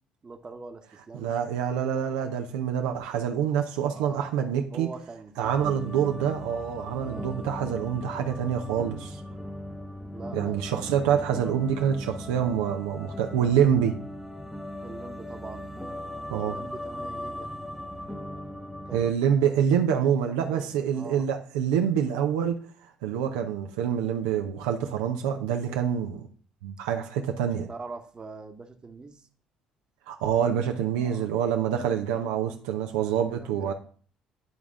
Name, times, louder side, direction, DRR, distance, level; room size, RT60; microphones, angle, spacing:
voice 1, 0.2-1.3 3.8-4.3 4.7-6.2 7.0-7.3 10.1-11.6 14.8-15.7 16.3-17.5 18.9-21.3 27.7-29.3 31.0-31.3 33.0-33.7, right 3 dB, 30° right, 1.1 m, -44 dB
voice 2, 1.2-4.9 5.4-9.2 10.3-14.0 16.3-16.6 18.9-22.6 23.0-26.3 26.6-27.7 30.1-33.7, right 8 dB, 85° right, 0.7 m, -26 dB
sound 1, 5.4-19.1, left 1 dB, ahead, 0.9 m, -39 dB
10.5 x 3.6 x 3.7 m
hypercardioid pair, 65°, 3 cm